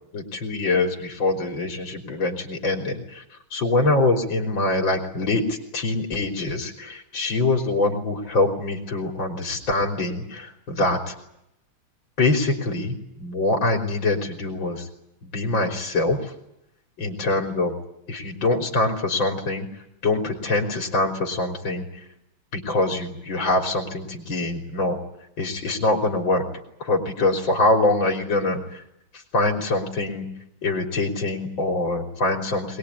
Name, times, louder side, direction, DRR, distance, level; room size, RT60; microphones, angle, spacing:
voice 1, 0.1-3.2 3.5-11.1 12.2-14.9 15.2-16.3 17.0-17.7 18.1-19.7 20.0-21.9 22.5-25.0 25.4-26.4 26.8-28.8 29.1-30.3 30.6-32.8, left 2 dB, 70° left, 2 dB, 4.4 m, -24 dB
22.5 x 22.0 x 9.7 m, 0.80 s
omnidirectional pair, 2.2 m